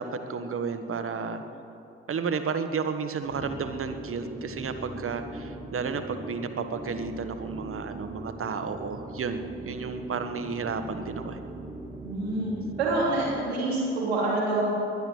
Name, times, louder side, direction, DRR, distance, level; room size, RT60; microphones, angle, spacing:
voice 1, 0.0-1.4 2.1-11.4, right 5 dB, 45° right, 9 dB, 1.4 m, -32 dB
sound 1, 3.2-13.6, right 2 dB, 10° right, 1.1 m, -40 dB
voice 2, 12.0-12.5 12.8-14.6, right 2 dB, 85° right, -5 dB, 3.5 m, -26 dB
21.0 x 10.5 x 6.5 m, 2.8 s
figure-of-eight pair, 40°, 31 cm